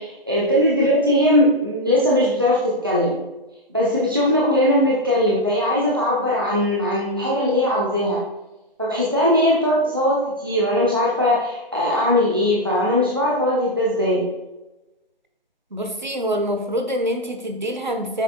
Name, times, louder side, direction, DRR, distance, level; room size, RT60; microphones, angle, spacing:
voice 1, 0.0-3.2 3.7-8.2 8.8-14.3, left 1 dB, 25° right, -6 dB, 0.8 m, -20 dB
voice 2, 15.7-18.2, equal, 50° right, 5 dB, 1.4 m, -25 dB
9.5 x 8.1 x 2.5 m, 1.0 s
figure-of-eight pair, 180°, 29 cm